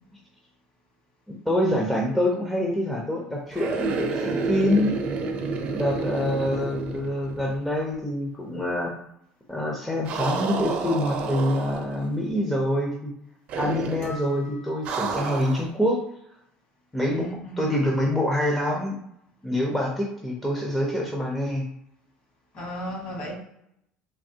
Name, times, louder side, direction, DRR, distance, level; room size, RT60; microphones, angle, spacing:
voice 1, 1.3-4.9 5.6-8.9 9.5-13.1 13.6-16.0 16.9-17.3 17.6-19.0 19.4-21.7, left 1 dB, 5° left, 0.5 m, -26 dB
sound 1, 3.5-7.7 7.9-8.0 10.1-12.1 13.5-14.2 14.9-15.7, right 4 dB, 50° right, 0.5 m, -30 dB
sound 2, 14.0-15.4, left 2 dB, 90° left, 0.6 m, -45 dB
voice 2, 17.1-17.7 22.5-23.3, right 1 dB, 45° left, 1.3 m, -34 dB
3.4 x 2.3 x 2.7 m
cardioid pair, 135°, 3 cm